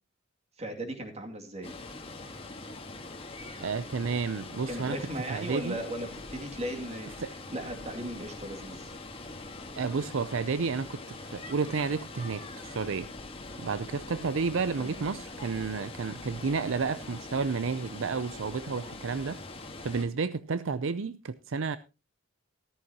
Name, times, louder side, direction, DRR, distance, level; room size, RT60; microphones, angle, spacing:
voice 1, 0.6-1.7 4.7-8.9 14.8-15.0, right 1 dB, 30° right, 2.4 m, -37 dB
Water, 1.6-20.1, left 2 dB, 30° left, 1.5 m, -43 dB
voice 2, 3.6-5.0 5.3-5.8 7.2-7.3 9.7-13.1 13.6-19.4 19.8-21.8, right 5 dB, 70° right, 0.5 m, -31 dB
14.0 x 13.5 x 2.9 m
head